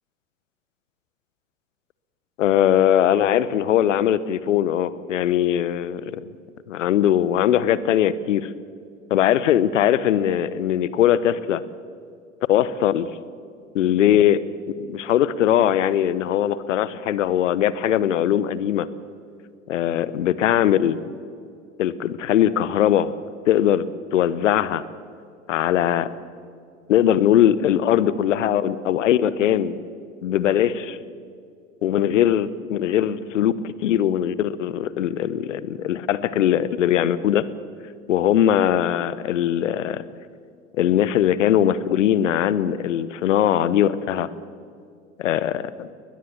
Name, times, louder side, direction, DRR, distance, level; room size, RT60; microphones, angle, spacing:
voice 1, 2.4-6.3 6.7-8.5 9.1-11.6 12.5-13.1 13.7-14.4 14.8-18.9 19.7-21.0 21.8-23.1 23.5-24.8 25.5-26.1 26.9-29.8 30.2-31.0 31.8-37.5 38.1-40.0 40.8-44.3 45.2-45.9, left 10 dB, 65° left, 17 dB, 1.1 m, -20 dB
21.0 x 21.0 x 7.0 m, 2.4 s
figure-of-eight pair, 90°, 40 cm